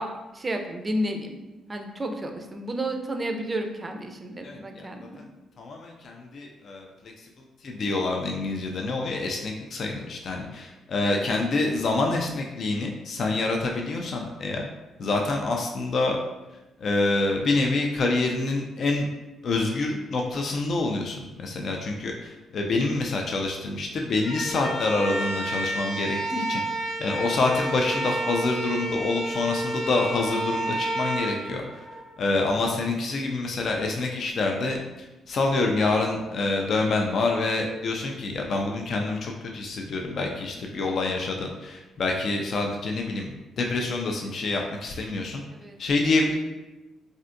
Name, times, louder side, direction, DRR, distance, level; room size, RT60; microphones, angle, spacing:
voice 1, 0.0-1.4 1.7-5.2 11.0-11.3 45.5-45.8, right 1 dB, 25° right, 4 dB, 0.4 m, -32 dB
voice 2, 4.4-4.9 5.6-6.9 7.6-14.7 15.0-16.2 16.8-19.1 19.4-26.6 27.0-31.6 32.2-34.8 35.3-43.3 43.6-45.4 45.8-46.4, left 3 dB, 55° left, 1 dB, 0.4 m, -26 dB
sound 1, 24.2-32.3, right 1 dB, 90° left, 1.0 m, -30 dB
3.2 x 2.6 x 2.5 m, 1.1 s
cardioid pair, 90°, 0 cm